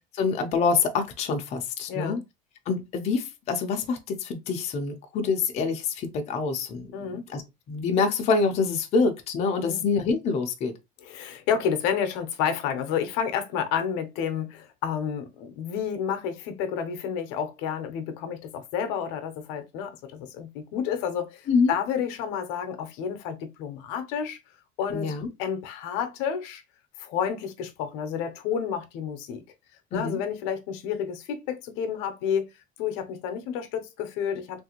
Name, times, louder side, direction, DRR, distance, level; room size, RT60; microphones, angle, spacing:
voice 1, 0.1-2.2 2.7-7.4 7.7-10.7 21.5-21.8 24.9-25.3 29.9-30.2, left 4 dB, 35° left, 0.5 m, -26 dB
voice 2, 1.9-2.2 6.9-7.2 9.6-9.8 11.0-24.4 24.8-26.6 27.0-29.4 29.9-32.5 32.8-34.6, left 8 dB, 75° left, 0.7 m, -30 dB
3.3 x 2.5 x 2.8 m
cardioid pair, 165°, 19 cm